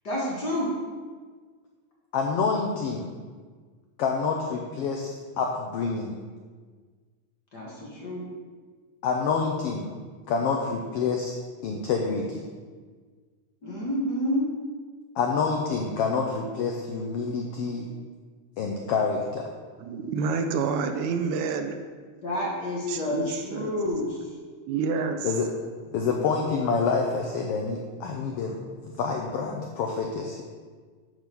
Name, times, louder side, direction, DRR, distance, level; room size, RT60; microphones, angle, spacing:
voice 1, 0.0-0.7 7.5-8.3 13.6-14.5 22.2-24.3, left 1 dB, 45° left, -4 dB, 1.4 m, -29 dB
voice 2, 2.1-3.1 4.0-6.2 9.0-9.9 10.3-12.5 15.2-17.9 18.6-19.5 25.2-25.5 25.9-28.6 28.8-30.4, left 5 dB, 80° left, 1 dB, 1.3 m, -27 dB
voice 3, 19.8-21.8 22.9-23.7 24.7-25.3, right 5 dB, 80° right, 7 dB, 1.9 m, -28 dB
9.2 x 3.7 x 6.7 m, 1.5 s
omnidirectional pair, 3.4 m